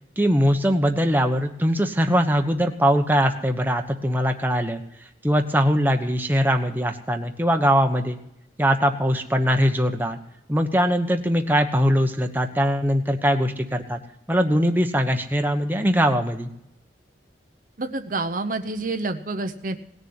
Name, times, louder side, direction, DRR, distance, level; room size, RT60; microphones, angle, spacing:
voice 1, 0.2-4.8 5.2-8.2 8.6-10.2 10.5-14.0 14.3-16.5, equal, 10° right, 4 dB, 1.1 m, -21 dB
voice 2, 17.8-19.8, right 3 dB, 50° right, 7 dB, 0.9 m, -28 dB
18.5 x 6.9 x 9.5 m, 0.83 s
head